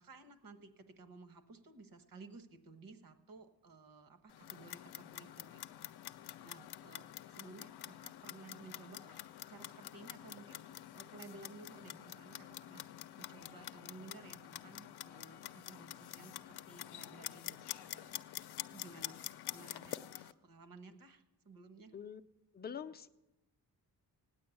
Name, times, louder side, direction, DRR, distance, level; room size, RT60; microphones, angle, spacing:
voice 1, 0.0-5.9 6.4-10.7 10.9-18.2 18.7-21.9, right 3 dB, 55° right, 9 dB, 1.4 m, -56 dB
Clock, 4.3-20.3, left 12 dB, 70° left, 0.6 m, -47 dB
voice 2, 22.5-23.1, left 7 dB, 25° left, 9 dB, 0.5 m, -45 dB
16.5 x 9.6 x 8.4 m, 0.99 s
wide cardioid pair, 170°, 40 cm